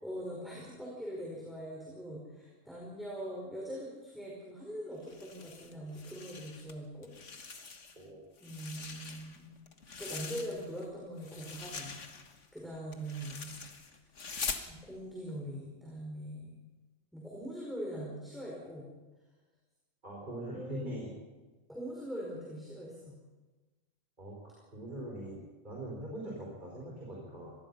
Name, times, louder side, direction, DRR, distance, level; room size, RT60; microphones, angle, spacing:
voice 1, 0.0-7.1 7.4-7.8 8.4-9.6 10.0-12.0 12.5-13.6 14.6-16.5 17.1-18.9 20.5-21.0 21.7-23.1, equal, ahead, -4 dB, 5.3 m, -42 dB
sound 1, 5.0-6.7 7.0-8.0 8.4-10.8 11.2-14.7, left 5 dB, 60° left, 1.9 m, -43 dB
voice 2, 8.0-8.3 20.0-21.1 24.2-27.5, right 1 dB, 35° right, -3 dB, 5.3 m, -42 dB
25.5 x 20.0 x 5.7 m, 1.2 s
omnidirectional pair, 1.4 m